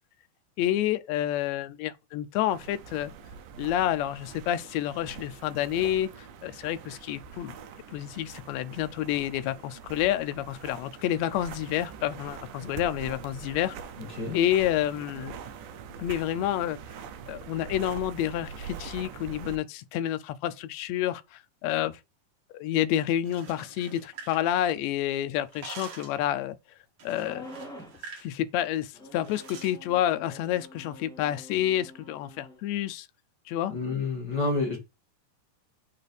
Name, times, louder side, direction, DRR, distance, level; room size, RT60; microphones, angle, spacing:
voice 1, 0.6-3.1 3.6-6.1 6.4-7.6 7.9-13.7 14.3-15.3 16.0-16.8 17.3-22.0 22.5-26.6 27.0-27.4 28.2-33.1 33.5-33.7, left 12 dB, 80° left, 1.6 m, -29 dB
sound 1, 2.5-19.6, right 6 dB, 85° right, 2.3 m, -43 dB
sound 2, 23.1-25.0 25.3-26.2 27.0-28.3 28.6-28.8 29.2-29.8, right 5 dB, 55° right, 2.4 m, -46 dB
sound 3, 27.1-28.0 28.9-32.6, left 1 dB, 5° left, 0.6 m, -47 dB
voice 2, 33.7-34.8, left 3 dB, 50° left, 1.4 m, -28 dB
5.5 x 4.1 x 5.1 m
omnidirectional pair, 3.7 m